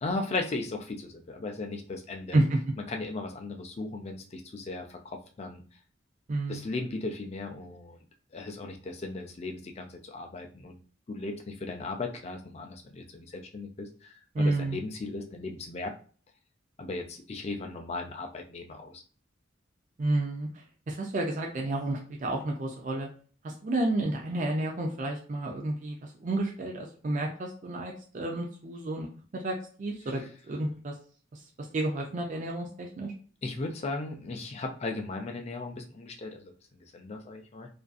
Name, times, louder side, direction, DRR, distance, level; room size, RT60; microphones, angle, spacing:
voice 1, 0.0-2.4 2.9-5.6 6.5-8.0 8.3-10.8 11.1-15.9 16.8-19.0 30.0-30.2 33.4-36.5 36.9-37.7, left 3 dB, 35° left, 3 dB, 0.4 m, -37 dB
voice 2, 6.3-6.6 14.3-14.8 20.0-20.5 20.9-23.1 23.4-29.1 29.3-30.2 30.5-30.9 31.7-33.1, right 2 dB, 40° right, 0 dB, 0.4 m, -30 dB
2.5 x 2.3 x 2.4 m, 0.41 s
head